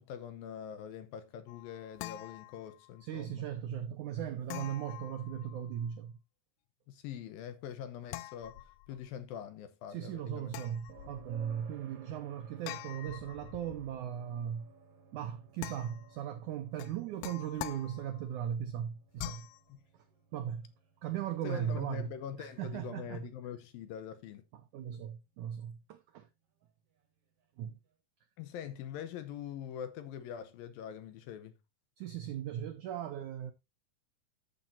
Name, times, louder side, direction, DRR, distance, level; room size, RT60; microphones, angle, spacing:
voice 1, 0.0-3.4 6.9-10.6 19.7-19.8 21.4-24.4 28.4-31.6, left 9 dB, 75° left, 2.4 m, -44 dB
sound 1, 1.5-3.1 4.5-5.9 8.1-9.1 10.5-11.6 12.6-14.1 15.6-16.2 16.8-18.4 19.2-19.6, left 16 dB, 90° left, 1.9 m, -45 dB
voice 2, 3.0-6.1 9.9-14.7 15.1-19.5 20.3-20.7 21.0-22.1 22.4-23.3 24.5-26.3 27.6-27.8 32.0-33.5, right 9 dB, 80° right, 1.7 m, -38 dB
sound 2, 10.9-24.7 27.0-27.1, right 6 dB, 50° right, 2.1 m, -59 dB
13.0 x 7.3 x 2.6 m
omnidirectional pair, 4.7 m